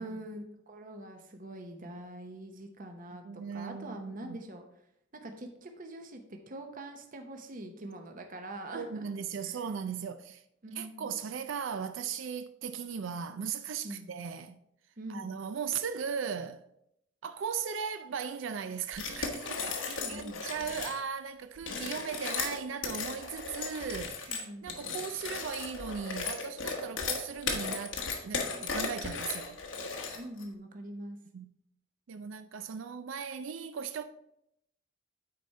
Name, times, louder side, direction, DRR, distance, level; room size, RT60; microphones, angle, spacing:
voice 1, 0.0-4.6 5.1-9.7 10.6-11.1 13.8-14.1 15.0-15.3 19.9-20.4 24.3-24.8 28.5-28.6 30.2-31.2, right 1 dB, 45° right, 0.8 m, -44 dB
voice 2, 3.3-4.4 8.7-10.4 10.8-14.6 15.1-16.6 17.2-29.6 31.3-31.5 32.1-34.0, right 6 dB, 70° right, 0.4 m, -38 dB
sound 1, 18.9-21.0 21.6-30.4, left 4 dB, 70° left, 1.2 m, -36 dB
9.3 x 4.3 x 4.6 m
head